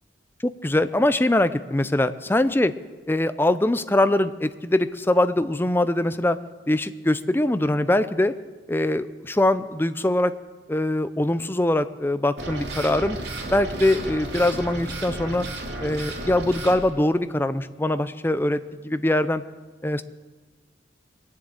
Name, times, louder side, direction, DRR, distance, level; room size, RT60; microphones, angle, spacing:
voice 1, 0.4-2.7 3.1-6.4 6.7-8.3 8.7-10.3 10.7-13.2 13.5-15.5 15.8-19.4 19.8-20.0, left 1 dB, 10° left, 12 dB, 0.5 m, -22 dB
sound 1, 12.4-16.8, right 2 dB, 60° right, 3.1 m, -33 dB
21.5 x 7.4 x 8.9 m, 1.3 s
head